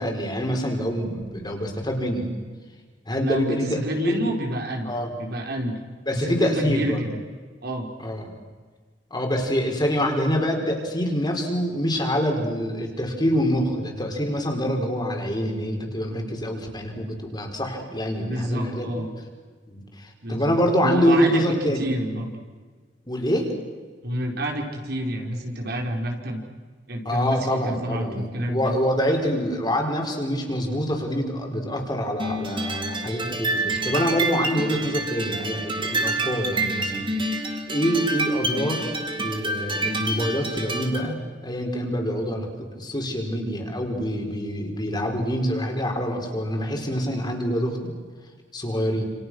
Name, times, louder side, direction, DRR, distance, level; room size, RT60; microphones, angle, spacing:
voice 1, 0.0-2.3 3.1-4.2 4.8-5.1 6.1-7.0 8.0-8.3 9.1-18.9 19.7-21.8 23.1-23.5 27.0-37.1 37.7-38.9 39.2-42.5 42.8-47.9 48.5-49.0, equal, 25° left, 2 dB, 4.8 m, -25 dB
voice 2, 3.2-4.9 5.2-5.8 6.1-7.1 7.6-7.9 18.2-19.1 20.2-20.5 20.8-22.3 24.0-26.4 26.9-28.7, equal, 60° right, 2 dB, 4.7 m, -28 dB
sound 1, 32.2-41.1, right 2 dB, 25° right, 2.7 m, -28 dB
29.5 x 28.5 x 6.4 m, 1.5 s
head